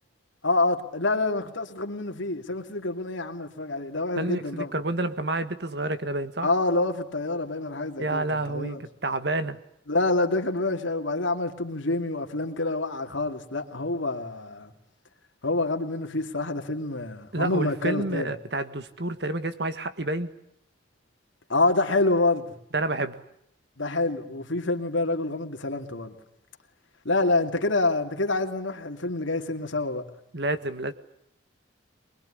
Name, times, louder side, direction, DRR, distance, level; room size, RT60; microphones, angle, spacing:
voice 1, 0.4-4.7 6.4-8.8 9.9-14.7 15.4-18.3 21.5-22.5 23.8-26.1 27.0-30.1, left 2 dB, 80° left, 2.5 m, -27 dB
voice 2, 4.2-6.5 8.0-9.6 17.3-20.3 22.7-23.1 30.3-30.9, right 2 dB, 55° right, 1.7 m, -29 dB
24.5 x 21.5 x 10.0 m
head